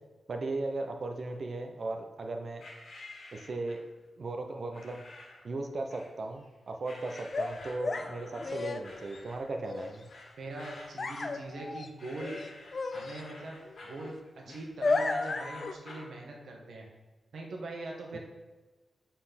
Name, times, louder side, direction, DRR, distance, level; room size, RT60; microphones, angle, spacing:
voice 1, 0.3-2.6 3.3-3.8 4.2-5.0 5.4-10.0 18.1-18.2, right 2 dB, 45° right, 4 dB, 0.9 m, -37 dB
sound 1, 2.6-3.9 4.7-5.5 5.9-6.5 6.8-16.1, left 2 dB, 55° left, 1.8 m, -50 dB
sound 2, 7.3-9.2 9.6-9.9 11.0-11.9 12.1-13.2 13.6-14.1 14.5-15.7, left 3 dB, 35° left, 0.5 m, -33 dB
voice 2, 10.4-12.4 12.9-16.9 17.3-18.2, right 2 dB, 65° right, 0 dB, 1.7 m, -42 dB
7.6 x 4.4 x 5.9 m, 1.2 s
wide cardioid pair, 165°, 0 cm